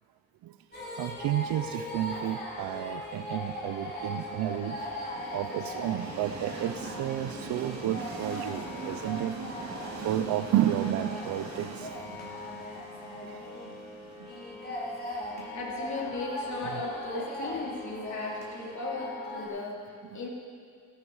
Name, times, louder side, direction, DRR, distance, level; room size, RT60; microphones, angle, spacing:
sound 1, 0.7-19.5, left 1 dB, 30° left, 4.6 m, -39 dB
voice 1, 1.0-4.8 5.3-9.4 10.0-11.9 12.2-12.4 13.2-13.7 15.4-15.5 16.7-16.8 20.1-20.2, right 12 dB, 80° right, 10 dB, 0.6 m, -31 dB
Train, 2.5-18.3, right 4 dB, 50° right, 2.3 m, -43 dB
voice 2, 15.5-20.3, left 2 dB, 55° left, -2 dB, 3.2 m, -37 dB
15.5 x 13.5 x 4.8 m, 2.2 s
cardioid pair, 80°, 35 cm